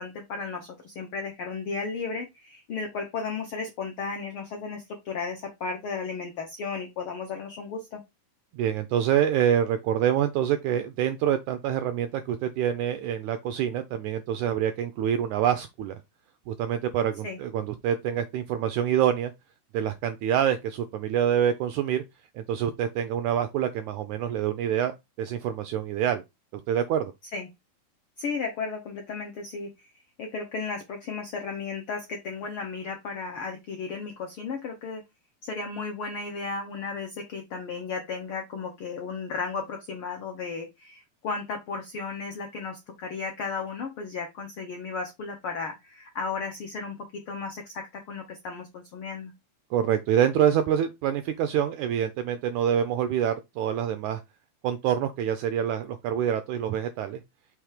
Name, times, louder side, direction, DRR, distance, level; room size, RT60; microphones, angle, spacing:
voice 1, 0.0-8.0 17.2-17.4 27.3-27.5 28.2-29.9 30.2-35.0 35.4-49.3, left 4 dB, 80° left, 1.2 m, -34 dB
voice 2, 8.5-16.0 16.5-19.3 19.7-22.0 22.4-24.9 25.2-26.2 26.7-27.1 49.7-54.2 54.6-57.2, right 9 dB, 85° right, 1.7 m, -26 dB
6.2 x 3.2 x 5.0 m
omnidirectional pair, 4.0 m